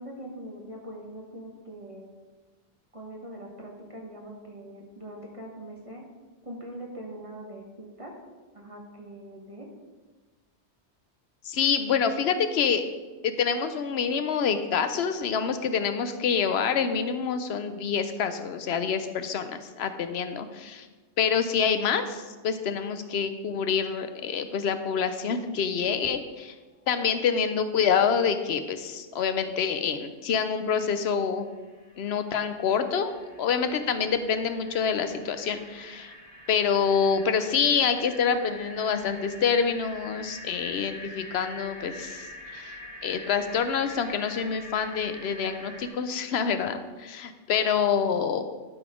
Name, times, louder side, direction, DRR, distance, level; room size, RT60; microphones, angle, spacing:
voice 1, 0.0-2.1 2.9-6.0 6.4-8.1 8.5-9.7, right 1 dB, 30° right, -1 dB, 1.3 m, -42 dB
voice 2, 11.5-12.8 13.2-20.9 21.2-26.5 26.9-31.5 32.0-33.1 33.4-36.1 36.5-42.3 42.5-42.7 43.0-48.4, left 6 dB, 70° left, 9 dB, 0.9 m, -26 dB
sound 1, 31.2-45.9, left 1 dB, 85° left, 2.4 m, -45 dB
12.0 x 4.0 x 5.0 m, 1.3 s
omnidirectional pair, 1.1 m